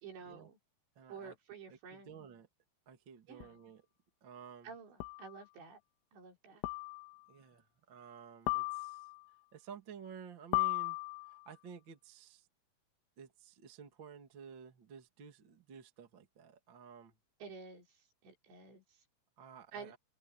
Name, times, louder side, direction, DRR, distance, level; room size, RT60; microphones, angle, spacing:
voice 1, 0.0-0.6 1.1-2.2 3.3-3.6 4.6-5.8 6.1-6.6 17.4-17.9 18.2-18.8 19.7-19.9, right 5 dB, 60° right, 6.7 m, -50 dB
voice 2, 0.9-1.3 1.7-2.5 2.8-3.8 4.2-4.7 6.4-6.6 7.3-9.1 9.5-11.0 11.2-12.5 13.2-17.1 19.4-20.0, right 7 dB, 40° right, 1.7 m, -53 dB
sound 1, 3.4-3.5 5.0-5.4 6.6-7.2 8.5-9.2 10.5-11.5, left 25 dB, 85° left, 3.6 m, -36 dB
open air
omnidirectional pair, 5.8 m